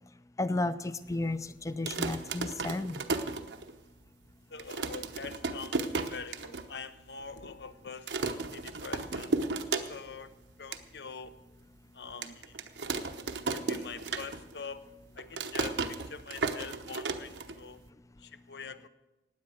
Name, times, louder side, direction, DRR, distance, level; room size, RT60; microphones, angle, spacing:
voice 1, 0.4-1.4 1.6-3.0, left 2 dB, 20° left, 14 dB, 0.5 m, -32 dB
sound 1, 1.7-4.0 4.3-4.4 4.6-6.6 7.0-7.1 7.3-7.7 8.1-10.2 10.5-10.8 11.3-11.4 12.2-14.7 14.9-17.9, right 3 dB, 85° right, 1.0 m, -34 dB
voice 2, 4.5-9.3 9.9-10.3 10.6-11.4 11.9-12.6 13.4-14.8 15.1-17.8 18.2-18.9, left 5 dB, 70° left, 12 dB, 0.8 m, -44 dB
16.0 x 9.7 x 6.3 m, 1.1 s
head